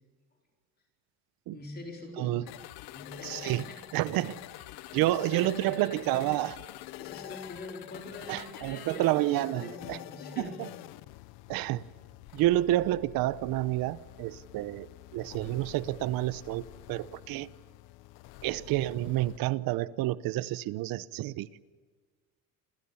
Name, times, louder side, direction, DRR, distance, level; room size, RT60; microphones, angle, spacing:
voice 1, 1.5-2.6 2.9-3.8 4.2-4.3 4.7-6.4 7.0-10.6 12.3-12.4, left 2 dB, 25° left, 1 dB, 4.7 m, -44 dB
sound 1, 2.5-19.4, left 18 dB, 85° left, 0.9 m, -47 dB
voice 2, 3.2-3.6 3.9-4.3 4.9-6.5 8.3-10.0 10.4-10.7 11.5-11.8 12.3-17.5 18.4-21.5, right 16 dB, 70° right, 18 dB, 0.9 m, -29 dB
28.5 x 27.0 x 7.2 m, 1.5 s
cardioid pair, 145°, 36 cm